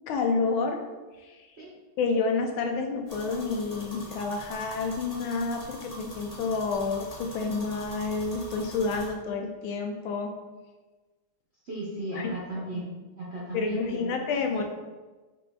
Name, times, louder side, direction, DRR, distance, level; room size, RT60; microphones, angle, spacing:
voice 1, 0.1-0.8 1.2-1.4 2.0-10.3 12.1-12.3 13.5-14.6, left 4 dB, 85° left, 3 dB, 1.4 m, -29 dB
sound 1, 3.1-9.1, left 1 dB, 35° left, 0.6 m, -44 dB
voice 2, 11.6-12.9 13.2-14.3, right 1 dB, 60° right, -7 dB, 0.6 m, -36 dB
4.9 x 4.2 x 2.2 m, 1.2 s
omnidirectional pair, 2.2 m